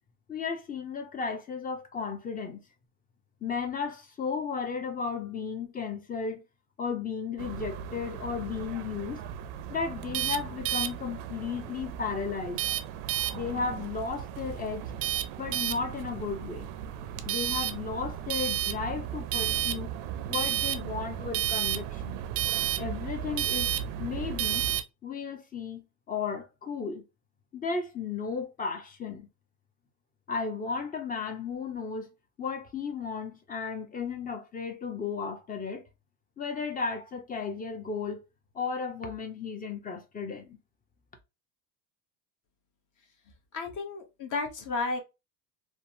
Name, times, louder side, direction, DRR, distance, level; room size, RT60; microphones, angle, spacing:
voice 1, 0.3-2.6 3.4-6.4 6.8-9.2 9.7-12.6 13.3-14.8 15.4-16.7 17.3-19.9 20.3-22.2 22.8-23.7 24.0-24.6 25.0-27.0 27.5-29.3 30.3-32.1 32.4-35.8 36.4-38.2 38.5-40.6, left 5 dB, 20° left, 0.5 m, -34 dB
sound 1, 7.4-24.8, right 12 dB, 75° right, 0.5 m, -33 dB
voice 2, 43.5-45.0, left 3 dB, 40° left, 0.9 m, -32 dB
3.1 x 2.0 x 2.6 m
cardioid pair, 130°, 46 cm